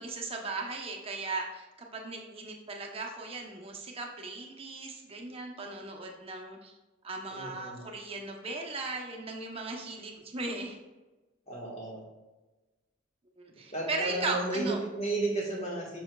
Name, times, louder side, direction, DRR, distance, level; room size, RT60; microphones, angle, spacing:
voice 1, 0.0-6.7 7.0-10.8 13.4-14.8, right 3 dB, 30° right, 1 dB, 0.9 m, -37 dB
voice 2, 7.3-7.9 11.5-12.0 13.7-16.0, right 2 dB, 35° left, -2 dB, 1.5 m, -33 dB
6.9 x 6.3 x 2.3 m, 1.1 s
head